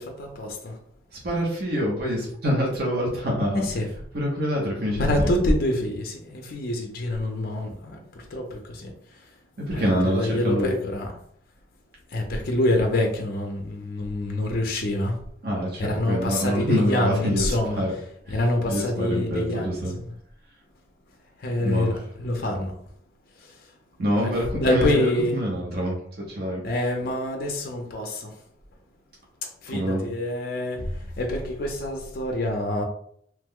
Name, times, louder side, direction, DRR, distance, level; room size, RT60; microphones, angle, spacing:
voice 1, 0.2-0.8 3.5-3.9 5.0-8.9 9.7-11.1 12.1-15.2 15.8-17.8 18.3-19.8 21.4-22.7 23.4-23.5 24.1-25.4 26.6-28.4 29.4-32.8, left 1 dB, 50° left, 3 dB, 0.5 m, -26 dB
voice 2, 1.2-3.7 4.1-5.3 9.6-10.7 15.4-17.9 18.3-18.4 18.7-20.0 21.6-22.0 24.0-26.6 29.7-30.0, equal, 50° right, -3 dB, 0.7 m, -26 dB
3.0 x 2.1 x 3.5 m, 0.65 s
head